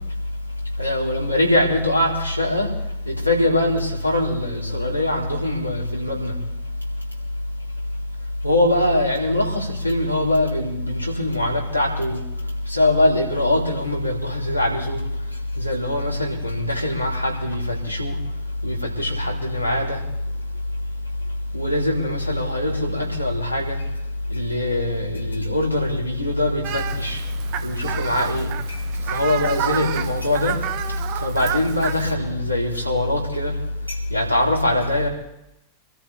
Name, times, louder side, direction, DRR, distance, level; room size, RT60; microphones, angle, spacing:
voice 1, 0.8-2.7 3.1-6.3 8.4-12.2 12.7-15.0 15.6-18.1 18.6-20.0 21.5-23.8 24.3-27.2 27.6-28.8 29.1-30.6 31.2-33.5 34.1-35.1, left 1 dB, 90° right, -3 dB, 4.2 m, -22 dB
Fowl, 26.6-32.1, right 11 dB, 45° right, 1.1 m, -30 dB
26.0 x 13.5 x 3.6 m, 0.85 s
figure-of-eight pair, 90°, 0 cm